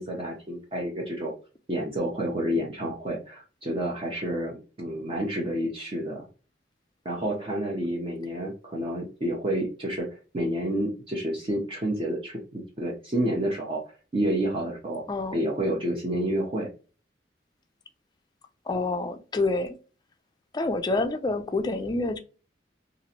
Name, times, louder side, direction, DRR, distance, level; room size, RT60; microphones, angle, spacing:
voice 1, 0.0-1.3 1.7-6.3 7.0-10.1 10.3-13.8 14.1-15.0 15.3-16.7, right 1 dB, 30° right, 0.6 m, -29 dB
voice 2, 18.7-19.7 20.5-22.2, left 2 dB, 20° left, 0.4 m, -27 dB
3.0 x 2.5 x 2.7 m
head